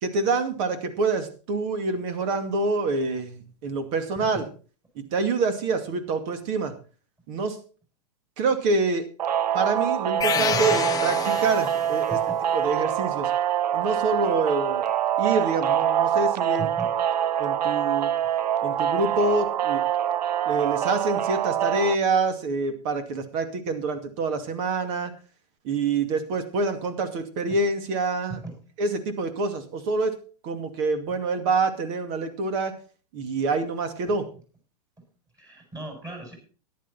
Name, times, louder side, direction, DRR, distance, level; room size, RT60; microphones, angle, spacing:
voice 1, 0.0-4.4 5.0-6.7 7.3-7.6 8.4-9.0 9.5-12.2 12.5-13.3 13.7-14.9 15.2-16.7 17.4-18.1 18.6-19.8 20.5-25.1 25.6-28.4 28.8-30.1 30.4-32.7 33.1-34.3, right 3 dB, 50° right, 8 dB, 2.5 m, -26 dB
sound 1, 9.2-22.0, right 10 dB, 90° right, 0.5 m, -25 dB
sound 2, 10.2-12.1, left 8 dB, 20° left, 0.9 m, -28 dB
voice 2, 35.4-36.3, right 2 dB, 15° right, 2 dB, 7.3 m, -37 dB
14.0 x 10.5 x 4.2 m, 0.37 s
hypercardioid pair, 120°, 20 cm